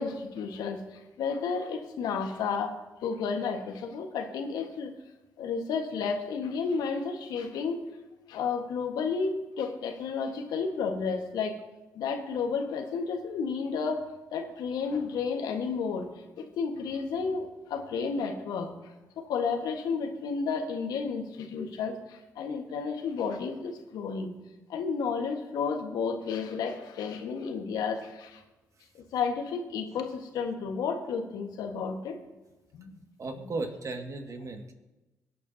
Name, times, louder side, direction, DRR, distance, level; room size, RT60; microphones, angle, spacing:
voice 1, 0.0-2.7 3.0-4.9 5.4-7.8 8.3-11.5 11.9-14.0 14.3-16.1 16.4-18.7 19.2-24.3 24.7-28.4 28.9-32.2 32.7-32.9 33.4-33.5, left 5 dB, 75° left, 5 dB, 1.4 m, -32 dB
voice 2, 33.2-34.7, right 3 dB, 50° right, 4 dB, 1.9 m, -35 dB
24.0 x 8.5 x 2.8 m, 1.1 s
hypercardioid pair, 45°, 7 cm